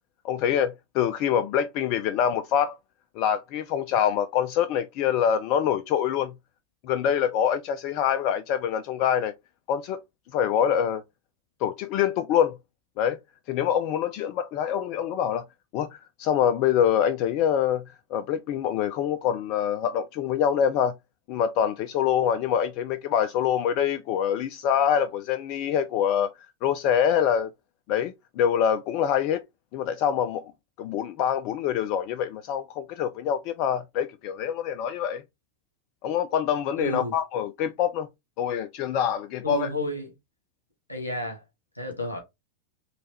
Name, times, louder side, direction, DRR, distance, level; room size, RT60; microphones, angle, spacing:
voice 1, 0.2-2.8 3.2-6.3 6.8-9.3 9.7-10.0 10.3-11.0 11.6-12.6 13.0-13.2 13.5-15.4 15.7-17.8 18.1-20.9 21.3-26.3 26.6-27.5 27.9-29.4 29.7-30.4 30.8-35.2 36.0-38.1 38.4-39.7, left 9 dB, 45° left, 0.4 m, -25 dB
voice 2, 36.8-37.1 39.4-40.1 40.9-41.4 41.8-42.2, equal, 80° left, 1.8 m, -31 dB
4.0 x 3.2 x 3.3 m
figure-of-eight pair, 90°, 0 cm